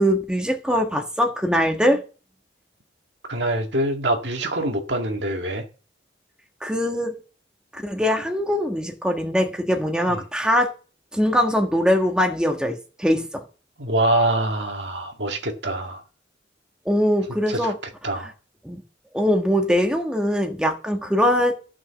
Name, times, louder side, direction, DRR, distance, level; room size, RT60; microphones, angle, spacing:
voice 1, 0.0-2.0 6.6-7.1 7.7-10.7 11.1-13.4 16.8-17.7 18.2-18.3 18.6-18.8 19.1-21.5, equal, 5° right, 1.5 m, -22 dB
voice 2, 3.3-5.6 10.1-10.2 13.8-16.0 17.5-17.7 18.0-18.3, right 1 dB, 70° right, 2.0 m, -24 dB
14.0 x 6.2 x 7.1 m
head